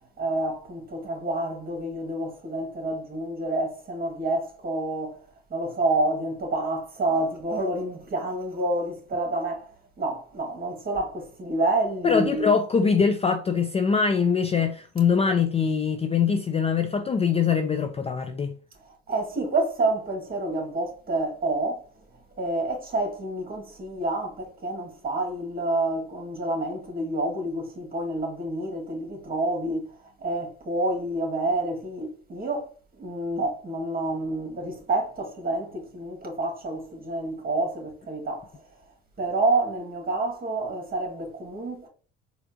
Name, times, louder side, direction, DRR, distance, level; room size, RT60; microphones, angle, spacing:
voice 1, 0.2-5.2 5.5-12.5 18.9-21.8 22.4-29.9 30.2-32.7 33.0-38.5 39.2-41.9, right 2 dB, 30° right, 1.8 m, -28 dB
voice 2, 12.0-18.6, left 6 dB, 20° left, 0.4 m, -23 dB
4.2 x 2.6 x 2.7 m
hypercardioid pair, 75°, 29 cm